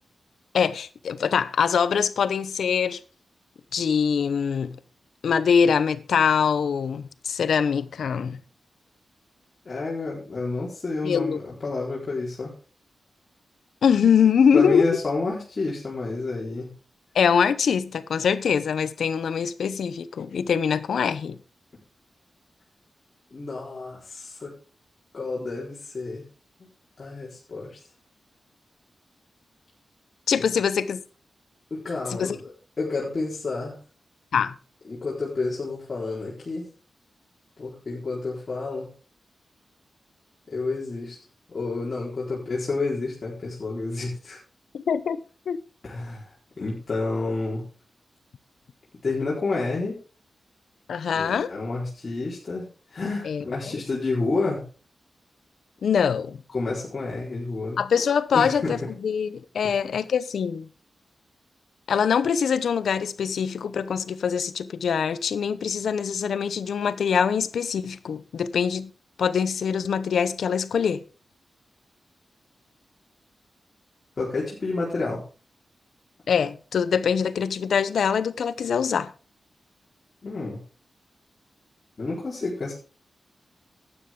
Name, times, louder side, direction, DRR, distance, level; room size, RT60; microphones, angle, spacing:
voice 1, 0.5-3.0 3.7-4.8 5.2-8.4 11.0-11.4 13.8-14.9 17.1-21.4 30.3-31.0 32.2-32.4 34.3-34.6 44.7-45.2 45.5-45.6 50.9-51.5 53.2-53.8 55.8-56.4 57.8-60.7 61.9-68.9 69.2-71.0 76.3-79.1, left 7 dB, 90° left, 0.8 m, -23 dB
voice 2, 9.6-12.5 14.5-16.7 23.3-24.5 25.1-26.2 26.6-26.7 27.0-27.8 30.4-30.5 31.7-32.5 32.8-33.8 34.9-36.7 37.6-38.9 40.5-41.2 41.5-44.4 45.8-46.3 46.6-47.6 49.0-50.0 51.1-52.7 52.9-54.6 56.5-57.8 58.3-58.8 74.2-75.2 80.2-80.6 82.0-82.7, left 3 dB, 45° left, 4.3 m, -29 dB
12.5 x 9.9 x 3.8 m
cardioid pair, 70°, 0 cm